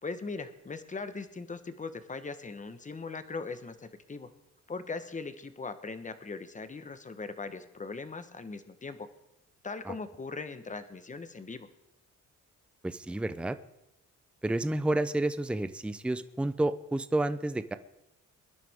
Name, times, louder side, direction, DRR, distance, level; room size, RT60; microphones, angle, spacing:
voice 1, 0.0-4.3 4.7-9.1 9.6-11.7, left 4 dB, 25° left, 10 dB, 1.2 m, -40 dB
voice 2, 12.8-13.6 14.4-17.7, right 2 dB, 5° right, 12 dB, 0.5 m, -30 dB
22.5 x 11.0 x 3.6 m, 0.88 s
cardioid pair, 95°, 31 cm